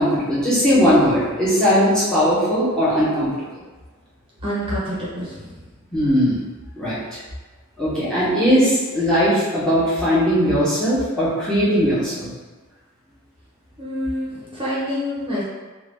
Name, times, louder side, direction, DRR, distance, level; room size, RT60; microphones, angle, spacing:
voice 1, 0.0-3.5 5.9-6.4 6.8-7.0 7.8-12.3, equal, 5° left, -11 dB, 1.0 m, -19 dB
voice 2, 4.4-5.3 13.8-15.4, equal, 25° right, -9 dB, 0.8 m, -27 dB
2.8 x 2.5 x 3.4 m, 1.3 s
head